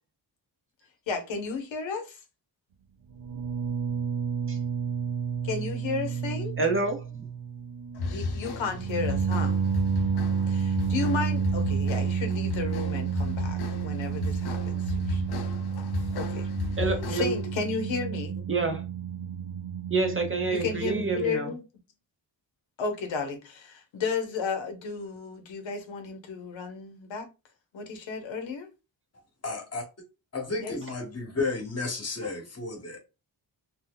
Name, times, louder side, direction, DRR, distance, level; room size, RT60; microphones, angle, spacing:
voice 1, 1.1-2.2 5.4-6.5 8.1-9.5 10.5-15.2 16.1-16.5 17.1-18.5 20.5-21.6 22.8-27.3 27.7-28.7 30.6-30.8, left 5 dB, 85° left, 0.9 m, -33 dB
sound 1, 3.1-21.3, right 6 dB, 75° right, 0.6 m, -30 dB
voice 2, 6.6-7.3 16.8-17.4 18.5-18.9 19.9-21.5, right 3 dB, 30° right, 0.7 m, -28 dB
sound 2, 8.0-17.5, left 4 dB, 60° left, 0.6 m, -35 dB
voice 3, 29.4-29.8 30.3-33.0, left 3 dB, 35° left, 1.1 m, -32 dB
2.7 x 2.1 x 3.7 m
cardioid pair, 80°, 44 cm